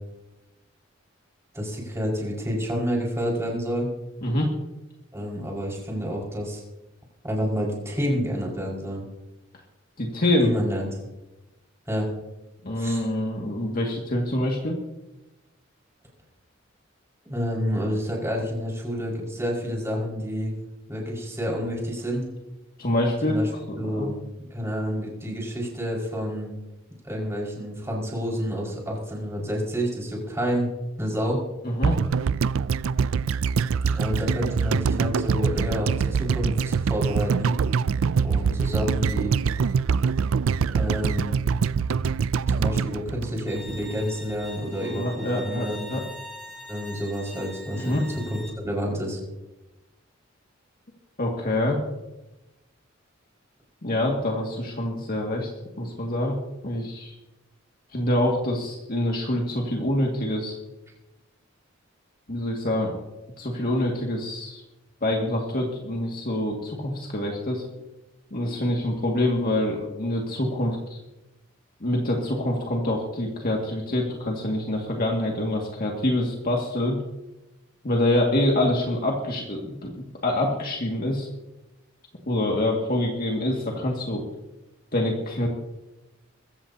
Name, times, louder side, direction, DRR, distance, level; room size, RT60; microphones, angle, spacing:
voice 1, 1.5-3.9 5.1-6.6 7.2-9.0 10.4-11.0 11.9-12.1 12.8-13.1 17.3-20.5 20.9-22.3 23.2-23.5 23.8-24.2 24.5-26.5 27.0-30.7 31.0-31.4 33.8-37.5 38.2-39.3 40.7-41.4 42.5-45.1 45.3-45.9 46.7-49.2, equal, 15° right, -3 dB, 5.3 m, -29 dB
voice 2, 4.2-4.5 10.0-10.5 12.6-14.8 22.8-23.4 23.7-24.1 31.6-32.0 44.8-46.0 47.8-48.0 51.2-51.8 53.8-55.5 55.8-56.4 56.6-57.2 57.9-60.6 62.3-62.9 63.4-64.6 65.0-67.6 68.3-71.0 71.8-77.0 77.8-81.3 82.3-84.2 84.9-85.5, left 1 dB, 45° left, -1 dB, 2.1 m, -26 dB
sound 1, 31.8-44.0 44.3-44.4, right 6 dB, 90° right, 0.4 m, -24 dB
Bowed string instrument, 43.5-48.5, equal, ahead, 3.5 m, -42 dB
22.5 x 15.5 x 2.9 m, 1.0 s
head